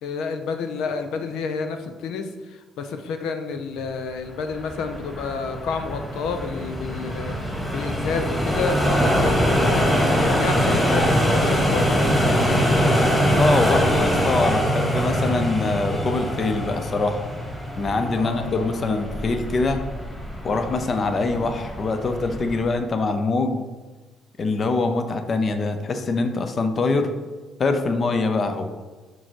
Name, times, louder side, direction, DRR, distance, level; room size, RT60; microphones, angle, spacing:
voice 1, 0.0-12.6 18.2-18.7, left 5 dB, 85° left, 7 dB, 0.7 m, -30 dB
sound 1, 4.4-22.7, equal, 15° left, 2.2 m, -23 dB
voice 2, 13.4-17.2 17.8-19.8 20.4-23.6 24.4-27.1 27.6-28.7, left 3 dB, 35° left, 7 dB, 0.7 m, -24 dB
6.9 x 6.2 x 4.5 m, 1.3 s
cardioid pair, 135°, 0 cm